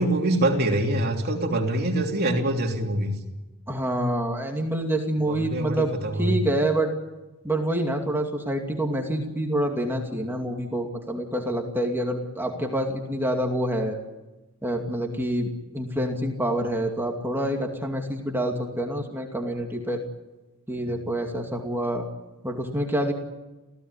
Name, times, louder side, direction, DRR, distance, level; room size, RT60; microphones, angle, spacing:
voice 1, 0.0-3.2 5.3-6.4, right 1 dB, 45° right, 2 dB, 3.3 m, -24 dB
voice 2, 3.7-5.9 6.2-6.9 7.4-14.0 14.6-20.0 20.7-22.1 22.4-23.1, right 1 dB, 10° right, 2 dB, 2.5 m, -27 dB
28.0 x 16.0 x 9.8 m, 1.1 s
head